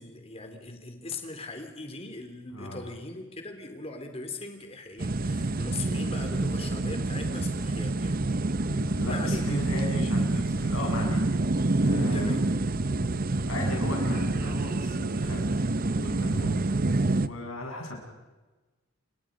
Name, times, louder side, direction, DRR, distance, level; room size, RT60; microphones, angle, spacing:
voice 1, 0.0-8.6 9.1-9.8 12.1-12.5, left 3 dB, 30° left, 6 dB, 3.3 m, -40 dB
sound 1, 5.0-17.3, right 2 dB, 45° right, 0.8 m, -27 dB
voice 2, 8.6-11.5 11.8-12.4 12.8-13.0 13.4-15.5 16.0-16.6 17.1-18.0, left 1 dB, 80° left, 1 dB, 7.5 m, -36 dB
28.0 x 25.0 x 5.2 m, 1.2 s
head